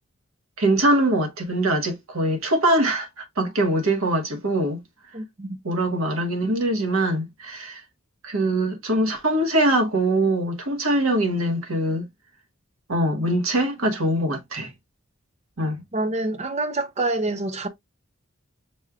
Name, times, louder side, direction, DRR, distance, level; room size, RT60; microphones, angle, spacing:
voice 1, 0.6-4.8 5.6-7.8 8.2-12.1 12.9-14.7 15.6-15.8, right 1 dB, 80° right, 1.3 m, -23 dB
voice 2, 5.1-5.6 15.9-17.7, right 2 dB, 30° right, 0.6 m, -27 dB
6.2 x 3.2 x 2.3 m
head